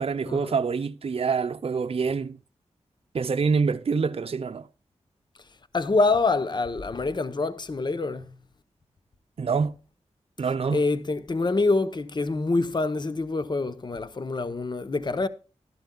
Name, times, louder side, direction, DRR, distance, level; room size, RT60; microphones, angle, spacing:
voice 1, 0.0-2.4 3.1-4.7 9.4-9.7 10.4-10.8, right 5 dB, 55° right, 0.7 m, -26 dB
voice 2, 5.7-8.3 10.7-15.3, left 3 dB, 40° left, 0.9 m, -26 dB
14.0 x 11.5 x 2.3 m
cardioid pair, 60°, 12 cm